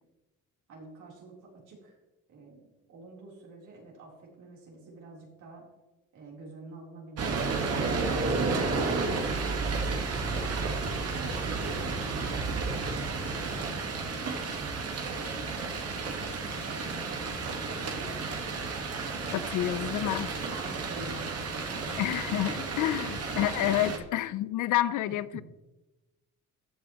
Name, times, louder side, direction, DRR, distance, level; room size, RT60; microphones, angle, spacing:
voice 1, 0.7-1.9 2.3-5.7 6.1-7.6 8.0-14.5 14.8-16.0 16.3-19.3 19.8-20.1 20.5-22.1 22.4-22.8 23.8-24.1 25.1-25.4, right 3 dB, 80° right, 3.8 m, -48 dB
sound 1, 7.2-24.0, right 4 dB, 55° right, 1.6 m, -32 dB
voice 2, 19.3-20.3 22.0-25.4, left 13 dB, 80° left, 0.6 m, -29 dB
14.0 x 8.4 x 3.1 m
cardioid pair, 90°, 30 cm